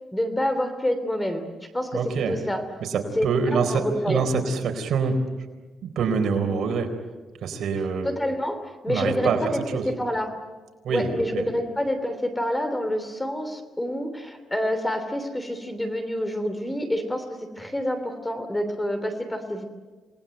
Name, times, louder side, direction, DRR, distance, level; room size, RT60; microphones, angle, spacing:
voice 1, 0.1-1.4 1.7-2.0 2.3-2.6 3.1-4.2 8.0-8.6 8.8-10.3 10.9-17.2 17.6-19.6, left 1 dB, 10° left, 8 dB, 3.1 m, -27 dB
voice 2, 1.9-2.4 2.8-5.2 5.8-6.9 7.4-8.1 8.9-9.9 10.8-11.5, right 5 dB, 65° right, 5 dB, 4.1 m, -25 dB
28.0 x 19.5 x 9.1 m, 1.3 s
cardioid pair, 130°, 0 cm